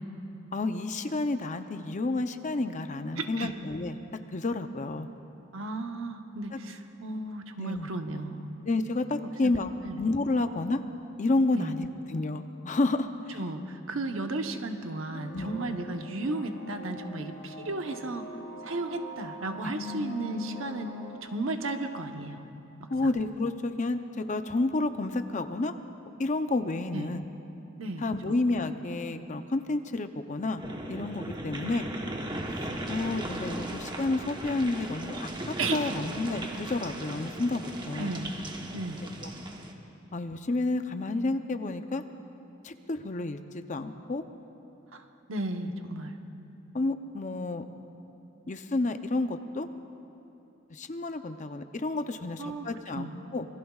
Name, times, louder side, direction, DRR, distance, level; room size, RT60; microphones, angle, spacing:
voice 1, 0.5-4.0 4.3-5.1 7.6-7.9 8.6-9.7 10.0-10.8 11.2-13.4 15.3-15.5 19.6-19.7 22.9-25.7 26.2-27.2 28.0-30.6 30.9-31.9 32.9-38.1 39.2-39.3 40.1-42.0 42.6-44.2 46.7-47.6 48.5-49.7 50.7-53.5, left 2 dB, 40° left, 8 dB, 0.6 m, -30 dB
voice 2, 3.2-3.5 5.5-8.5 9.4-9.5 9.8-10.0 11.5-11.7 13.4-18.3 18.6-20.9 21.2-22.4 23.0-23.1 26.9-27.1 27.8-28.4 31.6-31.7 35.6-36.0 37.9-38.3 38.7-39.0 44.9-45.0 45.3-46.2 52.4-52.7 52.9-53.2, right 2 dB, 85° right, 5 dB, 1.0 m, -34 dB
sound 1, 15.1-21.2, left 2 dB, 80° left, 4.0 m, -42 dB
sound 2, 30.6-39.7, right 1 dB, 25° right, 1.1 m, -37 dB
26.5 x 20.0 x 2.4 m, 2.9 s
head